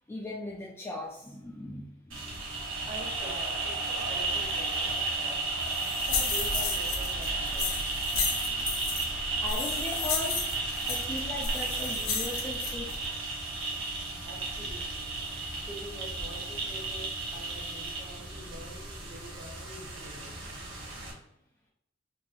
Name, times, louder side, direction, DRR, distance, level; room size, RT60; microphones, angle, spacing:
voice 1, 0.1-2.4 9.4-10.4 10.8-12.9, left 2 dB, 10° left, -2 dB, 0.3 m, -38 dB
sound 1, 2.1-21.1, right 3 dB, 70° right, 1.0 m, -34 dB
voice 2, 2.9-5.5 6.0-7.9 14.2-15.2 15.7-20.4, right 1 dB, 25° right, -1 dB, 0.8 m, -45 dB
sound 2, 5.6-13.1, left 4 dB, 75° left, 0.6 m, -34 dB
3.8 x 2.7 x 2.5 m, 0.81 s
head